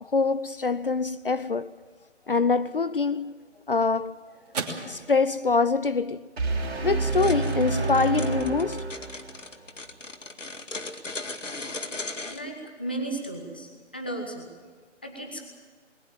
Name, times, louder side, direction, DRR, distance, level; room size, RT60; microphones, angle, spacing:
voice 1, 0.0-1.7 2.3-3.4 3.7-4.2 4.9-6.2 6.8-8.9, left 4 dB, 50° left, 0.6 m, -24 dB
sound 1, 3.3-11.8, right 4 dB, 30° right, 2.9 m, -44 dB
sound 2, 6.4-9.4, right 3 dB, 55° right, 3.7 m, -28 dB
sound 3, 7.1-12.4, left 3 dB, 80° left, 2.1 m, -37 dB
voice 2, 12.3-14.5 15.0-15.5, right 1 dB, 10° left, 0.6 m, -35 dB
21.0 x 20.0 x 7.4 m
figure-of-eight pair, 155°, 37 cm